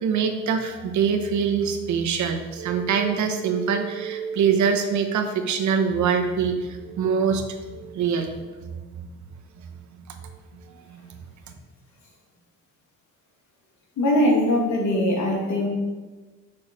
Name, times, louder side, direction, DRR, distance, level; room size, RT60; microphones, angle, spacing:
voice 1, 0.0-8.3 8.6-9.1 10.1-10.2 10.9-11.1, right 6 dB, 70° right, 6 dB, 1.0 m, -24 dB
voice 2, 14.0-15.7, left 1 dB, 75° left, -2 dB, 2.3 m, -21 dB
6.4 x 6.2 x 4.4 m, 1.3 s
cardioid pair, 90°, 30 cm